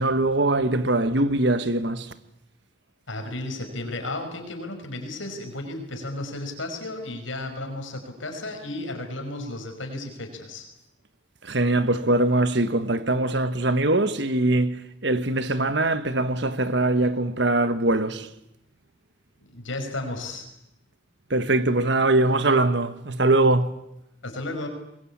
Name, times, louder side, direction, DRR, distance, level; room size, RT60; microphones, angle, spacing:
voice 1, 0.0-2.1 11.4-18.3 21.3-23.7, right 2 dB, 60° right, 1.4 m, -22 dB
voice 2, 3.1-10.7 19.5-20.5 24.2-24.7, left 2 dB, 80° left, 5.5 m, -33 dB
24.0 x 22.0 x 8.7 m
head